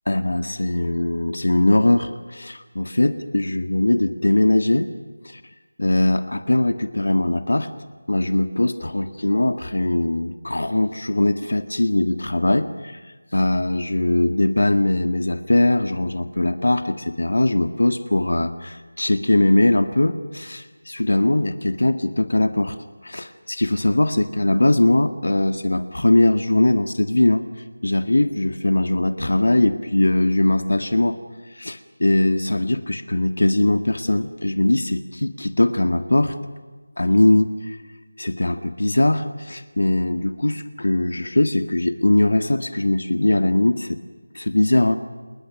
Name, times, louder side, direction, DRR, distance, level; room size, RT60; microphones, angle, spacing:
voice 1, 0.1-4.9 5.3-5.4 5.8-7.7 8.1-13.0 13.3-22.8 23.0-27.4 27.8-31.2 31.5-36.4 37.0-37.8 38.2-44.0 44.4-45.0, left 1 dB, 80° left, 8 dB, 1.8 m, -20 dB
29.5 x 28.5 x 6.4 m, 1.3 s
figure-of-eight pair, 175°, 0 cm